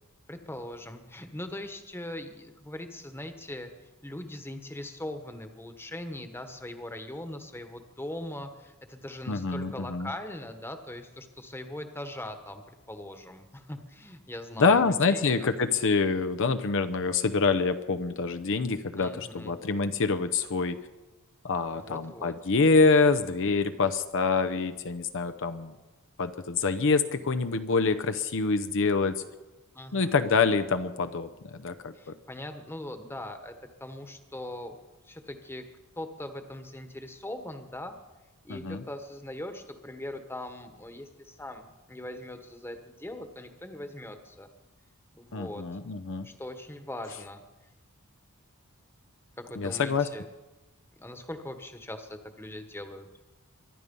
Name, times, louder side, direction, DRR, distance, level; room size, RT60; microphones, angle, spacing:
voice 1, 0.3-3.7 4.0-15.5 19.0-19.6 21.7-22.3 29.7-30.1 31.9-33.5 33.8-34.8 35.0-35.7 36.0-38.0 38.4-44.5 45.1-45.7 46.2-47.4 49.4-50.3 51.0-53.1, left 1 dB, 10° left, 7 dB, 1.3 m, -40 dB
voice 2, 9.3-10.1 14.6-20.8 21.4-25.7 26.2-29.2 29.9-31.9 38.5-38.8 45.3-46.3 49.6-50.1, left 4 dB, 60° left, 10 dB, 0.7 m, -26 dB
24.0 x 11.0 x 5.4 m, 1.1 s
head